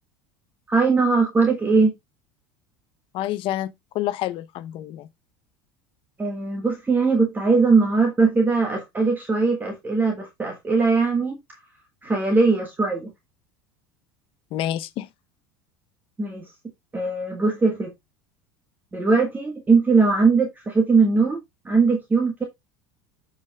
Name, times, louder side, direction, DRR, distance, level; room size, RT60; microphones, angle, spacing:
voice 1, 0.7-1.9 6.2-11.4 12.0-13.1 16.2-16.4 16.9-17.9 18.9-21.4 21.6-22.4, right 4 dB, 15° right, 1.6 m, -20 dB
voice 2, 3.1-5.1 14.5-15.1, left 13 dB, 55° left, 0.8 m, -28 dB
12.5 x 5.0 x 2.3 m
supercardioid pair, 100°, 11 cm